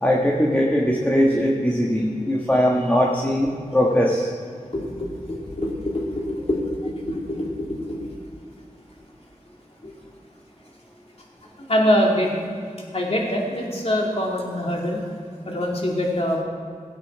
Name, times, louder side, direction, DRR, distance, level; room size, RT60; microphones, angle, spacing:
voice 1, 0.0-4.3, equal, 10° left, -2 dB, 1.6 m, -20 dB
voice 2, 4.7-7.8 9.8-9.9 11.6-12.3 12.9-15.0 15.4-16.4, left 1 dB, 50° left, -2 dB, 2.7 m, -24 dB
17.5 x 9.0 x 4.7 m, 2.2 s
wide cardioid pair, 60°, 13 cm